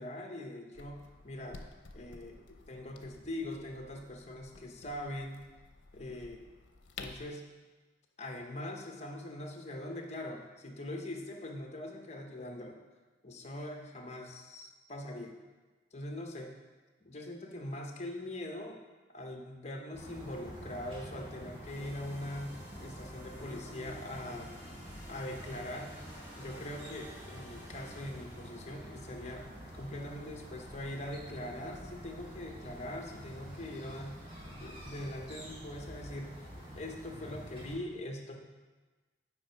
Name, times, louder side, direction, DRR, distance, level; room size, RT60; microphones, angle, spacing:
voice 1, 0.0-1.6 1.9-5.4 5.9-6.4 7.0-7.4 8.2-12.8 13.2-15.3 15.9-16.5 17.0-18.8 19.1-24.5 25.1-25.9 26.4-29.5 29.7-38.4, left 1 dB, 35° left, 2 dB, 0.9 m, -42 dB
sound 1, 0.7-7.3, left 3 dB, 80° left, 0.7 m, -52 dB
sound 2, 19.9-37.8, equal, 30° right, 1.7 m, -48 dB
sound 3, 21.6-28.7, equal, 10° right, 2.0 m, -52 dB
8.5 x 5.1 x 4.5 m, 1.3 s
head